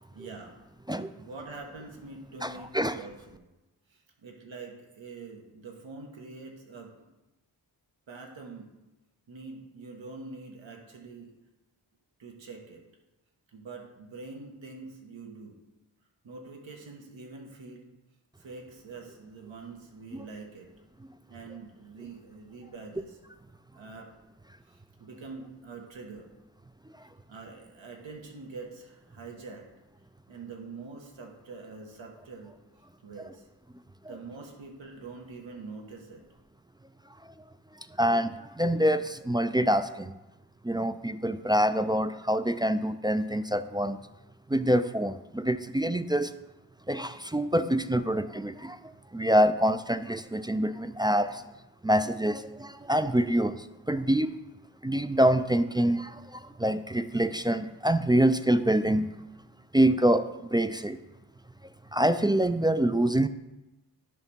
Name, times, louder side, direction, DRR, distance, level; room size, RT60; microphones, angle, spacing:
voice 1, 0.1-0.6 1.1-3.4 3.9-7.1 8.1-8.8 9.3-11.3 12.2-12.8 13.5-15.6 16.2-17.9 18.4-20.7 21.3-23.2 23.7-24.1 24.7-26.3 27.3-29.7 30.3-32.6 33.0-33.5 34.1-36.2, right 4 dB, 90° right, 2 dB, 1.3 m, -45 dB
voice 2, 2.4-3.0 38.0-40.1 40.6-44.0 44.5-46.3 46.9-48.8 49.1-51.4 51.8-54.3 54.8-59.1 59.7-60.3 60.5-61.0 61.9-63.3, right 1 dB, 10° right, 10 dB, 0.3 m, -25 dB
10.5 x 3.5 x 5.5 m, 1.0 s
cardioid pair, 40°, 45 cm